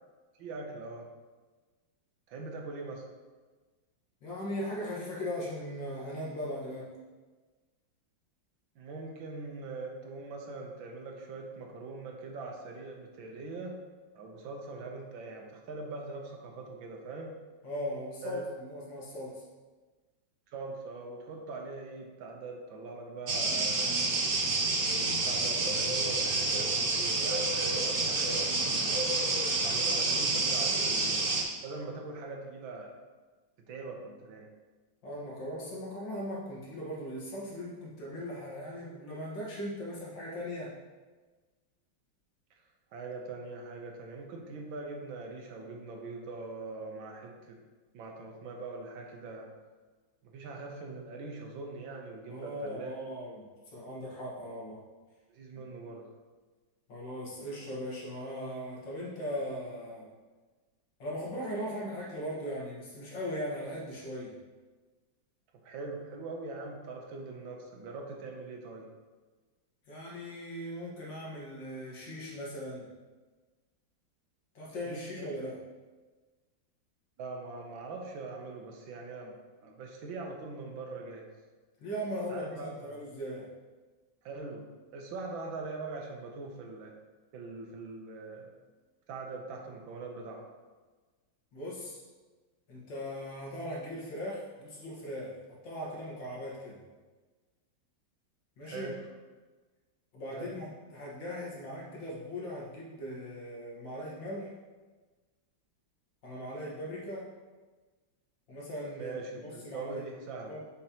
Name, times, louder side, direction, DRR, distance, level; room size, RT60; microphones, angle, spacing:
voice 1, 0.4-1.1 2.3-3.1 8.7-13.8 14.1-17.3 18.2-18.4 20.5-24.0 24.8-29.1 29.6-31.2 31.6-32.9 33.7-34.5 42.5-42.6 42.9-47.6 47.9-49.5 50.2-52.9 55.3-56.1 65.6-68.9 74.8-75.4 77.2-79.4 79.6-81.3 82.3-83.0 84.2-86.9 87.3-88.6 89.1-90.4 98.6-99.0 100.3-100.5 108.9-110.6, right 3 dB, 90° right, 1 dB, 1.7 m, -42 dB
voice 2, 4.2-7.0 17.6-19.4 35.0-40.8 52.3-54.8 55.6-55.7 56.9-60.1 61.0-64.4 69.9-72.9 74.5-75.6 81.8-83.5 91.5-92.0 92.7-96.8 98.6-98.9 100.1-104.5 106.2-107.3 108.5-110.0 110.5-110.6, equal, 70° left, -5 dB, 2.2 m, -39 dB
sound 1, 23.3-31.4, right 3 dB, 50° right, 0.6 m, -29 dB
7.2 x 5.3 x 2.9 m, 1.3 s
omnidirectional pair, 2.1 m